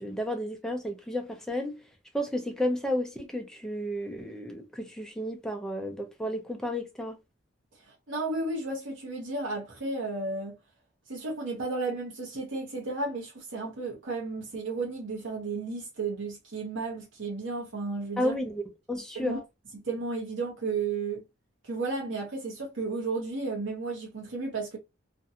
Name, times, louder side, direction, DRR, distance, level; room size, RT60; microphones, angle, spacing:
voice 1, 0.0-1.8 2.1-7.2 18.2-18.6 18.9-19.4, left 1 dB, 5° left, 0.5 m, -32 dB
voice 2, 7.9-10.6 11.1-18.3 19.1-19.4 19.7-21.2 21.6-24.8, right 3 dB, 70° right, 0.8 m, -33 dB
2.5 x 2.2 x 2.7 m
head